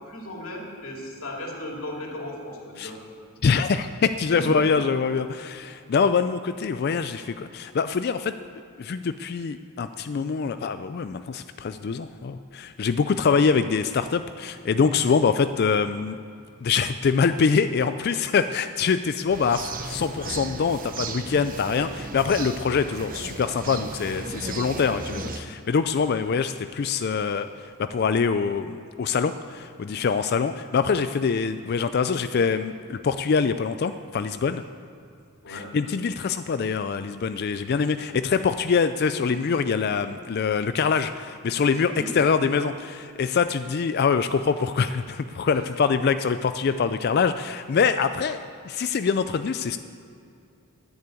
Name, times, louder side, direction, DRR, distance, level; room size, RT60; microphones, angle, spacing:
voice 1, 0.1-3.0 4.3-4.8 35.4-35.7 41.9-42.1 45.5-45.7, left 1 dB, 70° left, -1 dB, 2.7 m, -35 dB
voice 2, 3.4-8.3 8.8-16.2 16.6-34.6 35.5-48.4 48.6-49.8, left 5 dB, 45° left, 10 dB, 0.3 m, -24 dB
sound 1, 19.3-25.4, right 3 dB, 40° right, 0.8 m, -35 dB
10.5 x 9.6 x 8.3 m, 2.5 s
head